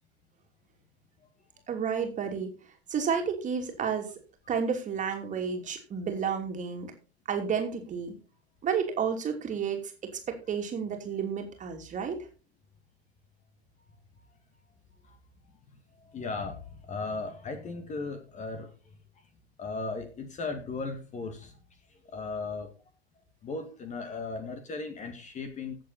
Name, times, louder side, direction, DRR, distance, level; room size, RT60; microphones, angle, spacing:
voice 1, 1.7-2.5 2.9-4.1 4.5-6.9 7.3-8.1 8.6-9.8 10.3-12.2, right 6 dB, 25° right, 4 dB, 2.9 m, -31 dB
voice 2, 16.0-18.7 19.6-21.6 22.1-22.7 23.4-25.8, left 3 dB, 20° left, 7 dB, 2.1 m, -36 dB
16.0 x 7.5 x 4.2 m, 0.35 s
figure-of-eight pair, 90°, 32 cm